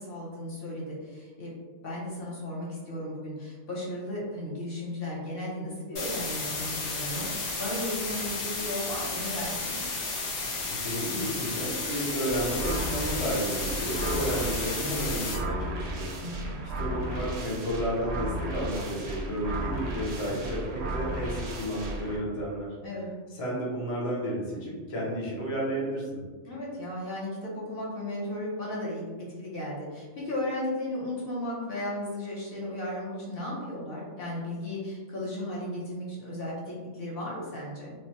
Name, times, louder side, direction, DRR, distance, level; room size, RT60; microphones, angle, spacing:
voice 1, 0.0-1.5 1.8-7.3 7.5-9.7 16.2-16.7 22.8-23.1 26.5-29.0 29.4-37.9, left 1 dB, 55° left, -5 dB, 0.9 m, -35 dB
sound 1, 6.0-15.4, left 3 dB, 80° left, 1.1 m, -33 dB
voice 2, 10.7-16.1 16.8-22.7 23.3-26.2, equal, 35° left, -5 dB, 0.6 m, -32 dB
sound 2, 12.3-22.2, right 1 dB, 70° right, 0.8 m, -34 dB
3.1 x 2.1 x 2.8 m, 1.4 s
omnidirectional pair, 1.2 m